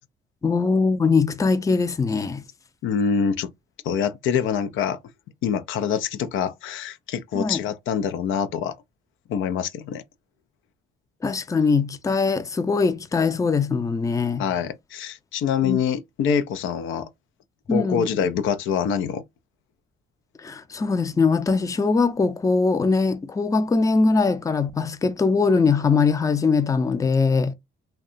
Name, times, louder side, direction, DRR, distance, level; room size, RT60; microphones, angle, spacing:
voice 1, 0.4-2.4 7.3-7.6 11.2-14.4 15.6-15.8 17.7-18.1 20.4-27.5, left 4 dB, 15° left, 0.4 m, -21 dB
voice 2, 2.8-3.5 3.8-5.0 5.4-8.7 9.3-10.0 14.4-17.1 17.7-19.2, left 7 dB, 80° left, 0.4 m, -25 dB
2.7 x 2.2 x 2.5 m
cardioid pair, 90°, 20 cm